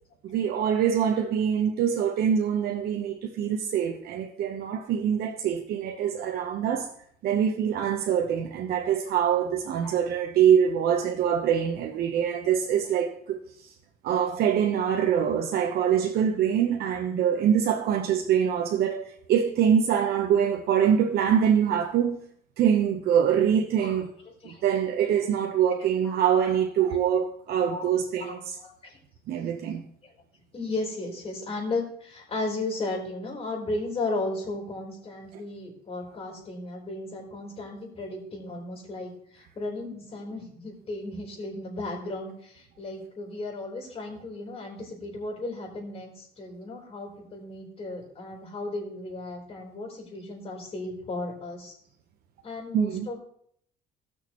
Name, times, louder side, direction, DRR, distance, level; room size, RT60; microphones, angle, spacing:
voice 1, 0.2-6.9 7.2-13.7 14.0-22.2 22.6-24.1 24.4-28.6 29.3-29.8 35.3-35.4 52.7-53.1, right 8 dB, 65° right, 0.9 m, -24 dB
voice 2, 27.6-27.9 28.2-29.0 30.0-30.1 30.5-51.7 52.4-53.2, left 2 dB, 35° left, 4.1 m, -35 dB
17.5 x 6.4 x 3.1 m
cardioid pair, 110°, 17 cm